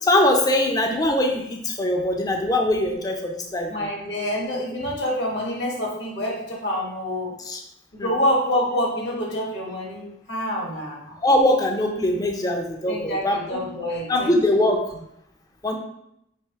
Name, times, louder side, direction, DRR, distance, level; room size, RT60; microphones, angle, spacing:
voice 1, 0.0-3.7 7.5-7.6 8.0-8.1 11.2-13.7 14.1-14.8 15.6-15.8, left 1 dB, 20° left, 3 dB, 0.5 m, -22 dB
voice 2, 3.7-7.4 7.9-11.1 12.9-14.7, left 1 dB, 60° left, -1 dB, 1.1 m, -27 dB
3.4 x 2.8 x 4.5 m, 0.78 s
head